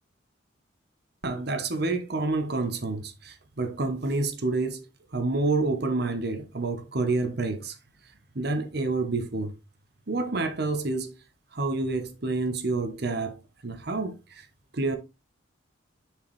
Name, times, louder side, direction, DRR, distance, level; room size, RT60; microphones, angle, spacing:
voice 1, 1.2-4.9 5.1-7.7 8.3-9.5 10.1-11.1 11.5-13.4 13.6-14.4 14.7-15.0, right 3 dB, 55° right, 0.9 m, -28 dB
7.0 x 4.7 x 3.2 m
head